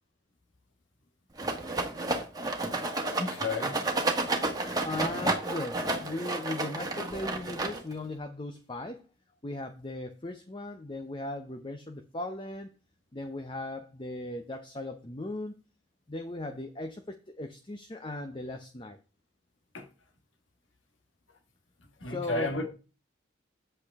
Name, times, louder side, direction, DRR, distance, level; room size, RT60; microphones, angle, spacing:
Rattle, 1.4-8.1, right 2 dB, 20° right, 1.5 m, -31 dB
voice 1, 3.2-3.8 19.7-19.8 22.0-22.7, left 3 dB, 75° left, 1.6 m, -32 dB
voice 2, 4.8-9.0 9.4-12.7 13.1-15.5 16.1-19.0 22.0-22.5, left 2 dB, 25° left, 0.7 m, -38 dB
8.5 x 8.0 x 3.5 m
head